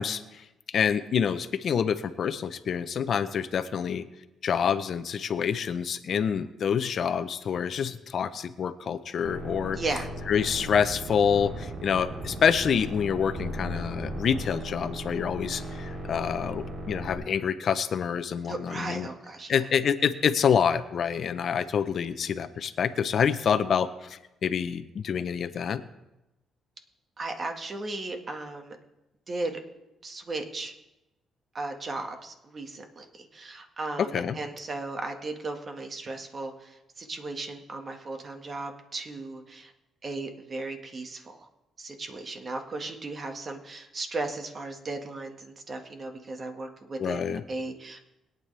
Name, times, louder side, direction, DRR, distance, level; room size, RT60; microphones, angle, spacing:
voice 1, 0.0-4.0 4.4-9.8 10.3-19.1 19.5-25.8 34.1-34.4 47.0-47.4, left 7 dB, 55° left, 12 dB, 0.7 m, -27 dB
sound 1, 9.2-17.2, right 1 dB, 55° right, 3.8 m, -37 dB
voice 2, 9.7-10.1 18.5-19.5 27.2-28.8 29.3-29.6 30.0-30.7 31.5-39.7 40.0-41.5 41.8-48.0, right 2 dB, 40° right, 4 dB, 1.7 m, -36 dB
21.5 x 9.1 x 3.4 m, 0.95 s
cardioid pair, 90°, 0 cm